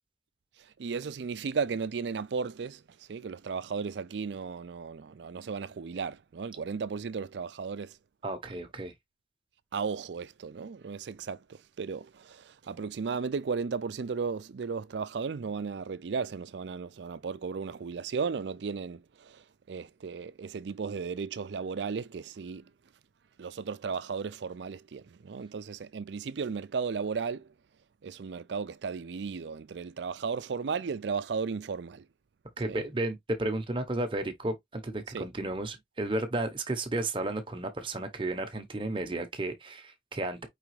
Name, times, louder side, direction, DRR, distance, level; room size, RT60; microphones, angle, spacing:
voice 1, 0.8-8.0 9.7-22.6 23.4-27.5 28.0-32.1 32.7-32.8 35.1-35.2, right 5 dB, 75° right, 0.4 m, -35 dB
voice 2, 8.2-8.9 32.6-40.5, right 2 dB, 30° right, 0.8 m, -33 dB
4.9 x 3.4 x 3.1 m
head